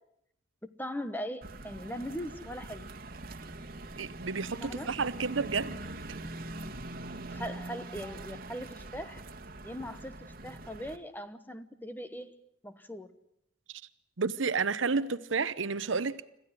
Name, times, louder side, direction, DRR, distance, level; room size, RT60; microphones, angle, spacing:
voice 1, 0.6-2.9 4.6-4.9 7.3-9.2 9.6-13.1, equal, 10° left, 1.0 m, -40 dB
sound 1, 1.4-11.0, right 2 dB, 45° right, 1.7 m, -43 dB
voice 2, 4.0-5.8 13.7-13.8 14.2-16.3, right 4 dB, 70° right, 0.9 m, -31 dB
26.5 x 15.0 x 9.7 m
head